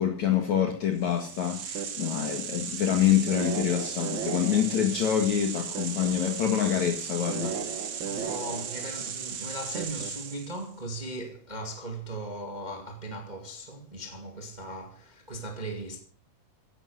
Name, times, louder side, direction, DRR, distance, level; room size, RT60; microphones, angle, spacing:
voice 1, 0.0-8.2, left 9 dB, 55° left, 2.8 m, -26 dB
sound 1, 1.0-10.6, right 7 dB, 60° right, 1.3 m, -35 dB
voice 2, 8.0-16.0, right 1 dB, 15° right, 1.8 m, -38 dB
16.5 x 10.5 x 6.5 m
omnidirectional pair, 4.3 m